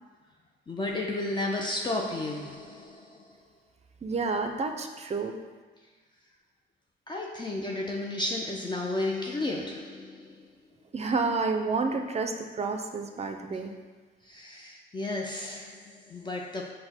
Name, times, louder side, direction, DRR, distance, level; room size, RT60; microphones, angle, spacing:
voice 1, 0.7-3.3 7.1-10.5 14.2-16.7, left 2 dB, 25° left, -1 dB, 0.4 m, -33 dB
voice 2, 4.0-5.4 10.9-13.7, right 4 dB, 35° right, 5 dB, 0.4 m, -29 dB
5.7 x 2.1 x 4.2 m, 1.4 s
cardioid pair, 90°, 20 cm